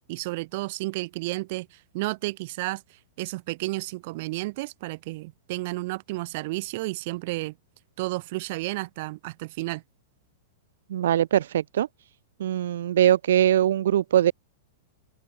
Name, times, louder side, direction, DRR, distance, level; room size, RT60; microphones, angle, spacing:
voice 1, 0.1-2.8 3.2-7.5 8.0-9.8, right 22 dB, 45° right, 1.1 m, -32 dB
voice 2, 10.9-11.9 12.4-14.3, right 11 dB, 75° right, 0.3 m, -21 dB
open air
supercardioid pair, 155°, 0 cm